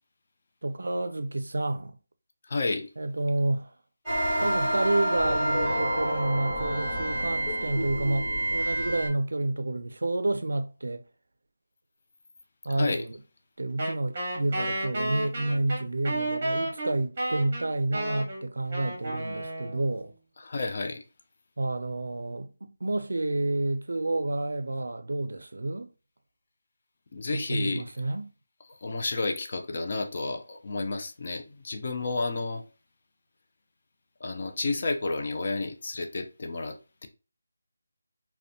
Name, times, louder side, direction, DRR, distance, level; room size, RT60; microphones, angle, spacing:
voice 1, 0.6-2.0 3.0-3.7 4.4-11.0 12.6-13.2 13.6-20.1 21.6-25.9 27.3-28.3, right 2 dB, 85° right, 0.4 m, -29 dB
voice 2, 2.5-2.9 12.7-13.1 20.4-21.0 27.1-27.8 28.7-32.6 34.2-37.1, left 3 dB, 35° left, 0.4 m, -31 dB
sound 1, 4.1-9.1, right 1 dB, ahead, 1.4 m, -28 dB
Wind instrument woodwind instrument, 13.8-20.1, right 1 dB, 30° right, 0.7 m, -32 dB
2.5 x 2.1 x 2.6 m
figure-of-eight pair, 175°, 0 cm